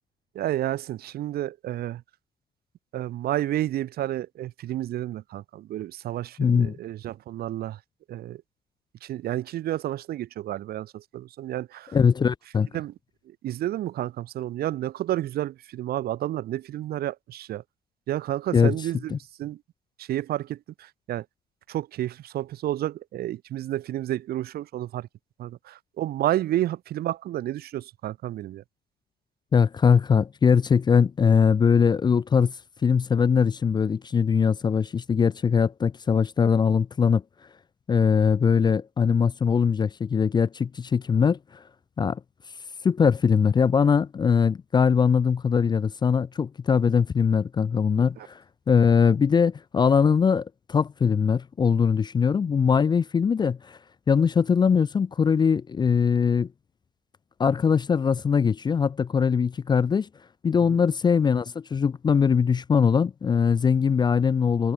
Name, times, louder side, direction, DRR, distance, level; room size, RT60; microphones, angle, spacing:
voice 1, 0.4-2.0 2.9-7.8 8.1-8.4 9.0-12.0 12.7-12.9 13.3-17.6 18.1-19.6 20.0-21.3 21.7-25.1 25.4-28.6 48.2-48.3 60.7-60.8, right 13 dB, 65° right, 1.8 m, -30 dB
voice 2, 6.4-6.7 11.9-12.7 18.5-18.7 19.1-19.2 29.5-32.5 32.8-37.2 37.9-41.4 42.0-42.2 42.8-48.4 48.7-53.8 54.1-56.5 57.4-60.1 60.4-64.7, left 6 dB, 25° left, 0.5 m, -21 dB
cardioid pair, 110°, 17 cm